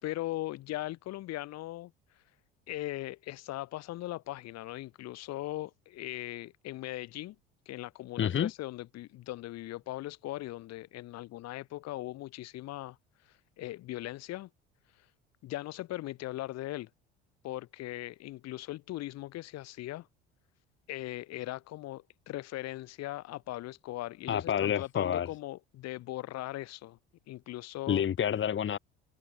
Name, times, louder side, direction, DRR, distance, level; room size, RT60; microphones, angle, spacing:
voice 1, 0.0-1.9 2.7-7.4 7.7-13.0 13.6-14.5 15.4-16.9 17.4-20.1 20.9-27.0 27.3-28.0, left 16 dB, 60° left, 5.3 m, -39 dB
voice 2, 8.2-8.5 24.3-25.3 27.9-28.8, left 9 dB, 40° left, 2.9 m, -28 dB
hypercardioid pair, 65°, 30 cm